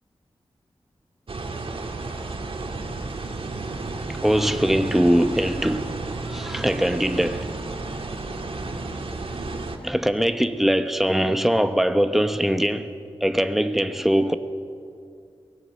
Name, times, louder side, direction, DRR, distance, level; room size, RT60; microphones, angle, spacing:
sound 1, 1.3-9.8, right 3 dB, 65° right, 1.9 m, -32 dB
voice 1, 4.2-5.9 6.3-7.5 9.8-12.9 13.2-14.4, equal, 5° right, 1.1 m, -21 dB
23.5 x 18.0 x 6.5 m
wide cardioid pair, 95°, 10 cm